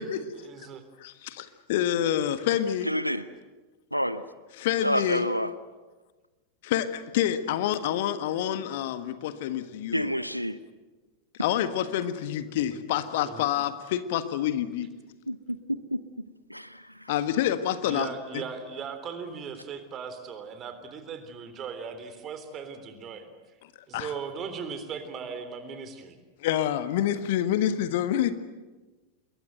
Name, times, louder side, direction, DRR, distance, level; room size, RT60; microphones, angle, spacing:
voice 1, 0.4-0.8 13.2-13.5 17.8-23.3 23.9-26.2, right 6 dB, 30° right, 9 dB, 3.5 m, -38 dB
voice 2, 1.0-2.9 4.6-5.2 6.6-10.1 11.4-14.9 17.1-18.1 18.3-18.4 23.9-24.1 26.4-28.3, left 11 dB, 50° left, 11 dB, 1.5 m, -27 dB
voice 3, 2.8-3.2 3.9-4.2 4.8-5.5 9.9-10.6 15.3-15.6 15.9-16.0 16.5-17.1, equal, 90° right, 14 dB, 0.9 m, -29 dB
26.5 x 22.5 x 7.9 m, 1.2 s
figure-of-eight pair, 90°, 0 cm